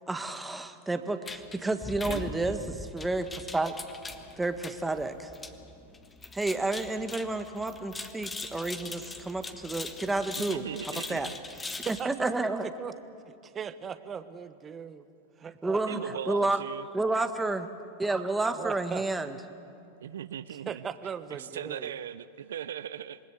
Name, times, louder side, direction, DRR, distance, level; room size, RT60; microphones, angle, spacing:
voice 1, 0.0-3.7 4.4-5.3 6.3-10.6 11.1-11.3 12.0-12.7 15.6-16.0 16.3-16.6 16.9-17.7 18.0-19.3, right 2 dB, 10° right, 8 dB, 1.5 m, -30 dB
padlocks and chains, 1.3-12.0, left 3 dB, 15° left, 1.6 m, -41 dB
voice 2, 2.1-2.7 10.4-11.4 15.9-16.9 20.0-20.8 21.3-23.2, right 10 dB, 80° right, 14 dB, 0.7 m, -39 dB
voice 3, 11.8-12.9 13.4-15.0 15.4-16.2 18.5-19.0 20.7-21.9, right 7 dB, 25° right, 12 dB, 1.3 m, -38 dB
27.5 x 20.5 x 8.2 m, 2.6 s
hypercardioid pair, 110°, 0 cm